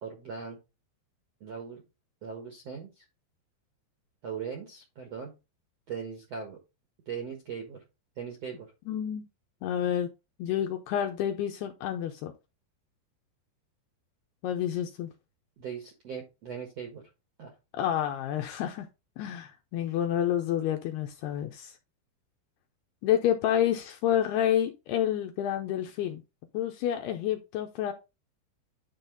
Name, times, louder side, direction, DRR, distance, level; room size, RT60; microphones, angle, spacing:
voice 1, 0.0-0.6 1.4-1.8 2.2-3.0 4.2-5.3 5.9-6.6 7.1-7.8 8.2-8.7 15.6-17.0 17.4-17.5, right 6 dB, 65° right, 2 dB, 1.6 m, -39 dB
voice 2, 8.9-9.3 9.6-10.1 10.4-12.3 14.4-15.1 17.7-18.9 19.2-21.7 23.0-26.2 26.5-27.9, left 10 dB, 80° left, 5 dB, 2.4 m, -29 dB
9.8 x 4.0 x 3.9 m, 0.26 s
omnidirectional pair, 5.3 m